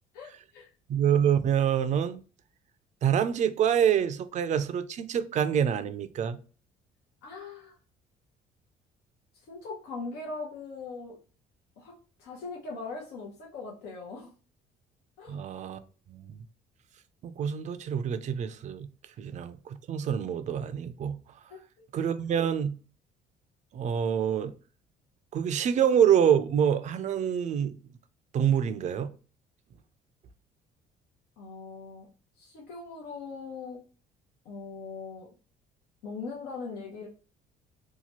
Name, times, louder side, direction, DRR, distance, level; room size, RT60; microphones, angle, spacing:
voice 1, 0.1-0.7 7.2-7.7 9.5-11.2 11.8-14.3 15.2-15.4 21.5-21.6 31.4-32.1 32.4-33.8 34.4-35.3 36.0-37.1, left 4 dB, 90° left, 0.8 m, -40 dB
voice 2, 0.9-2.2 3.0-6.4 15.3-15.8 16.1-16.4 17.2-18.9 19.2-21.2 21.9-22.7 23.7-24.5 25.3-27.8 28.3-29.1, right 8 dB, 45° right, 0.4 m, -26 dB
2.8 x 2.3 x 2.9 m
cardioid pair, 110°, 17 cm